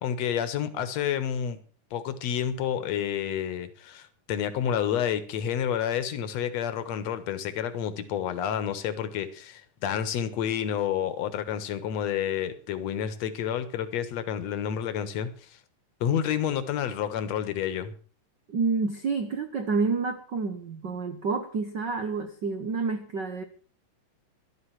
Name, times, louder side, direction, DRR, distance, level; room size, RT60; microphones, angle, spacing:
voice 1, 0.0-1.6 1.9-15.6 16.0-17.9, left 9 dB, 60° left, 12 dB, 2.3 m, -29 dB
voice 2, 18.5-23.4, right 4 dB, 80° right, 8 dB, 0.9 m, -29 dB
13.5 x 12.0 x 5.9 m, 0.41 s
omnidirectional pair, 3.8 m